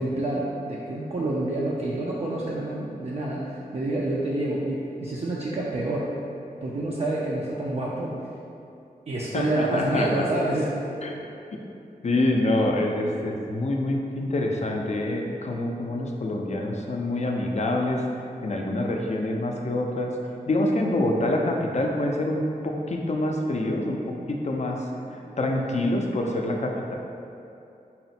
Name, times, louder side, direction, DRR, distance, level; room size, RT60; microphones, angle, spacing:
voice 1, 0.0-6.1 6.6-8.2 9.1-10.7 25.2-25.6, right 2 dB, 45° right, -6 dB, 0.4 m, -28 dB
voice 2, 9.3-10.1 11.0-11.1 12.0-18.0 18.4-20.1 20.5-24.9 25.4-27.0, left 1 dB, 45° left, 1 dB, 0.4 m, -26 dB
4.0 x 2.0 x 4.1 m, 2.7 s
wide cardioid pair, 75°, 16 cm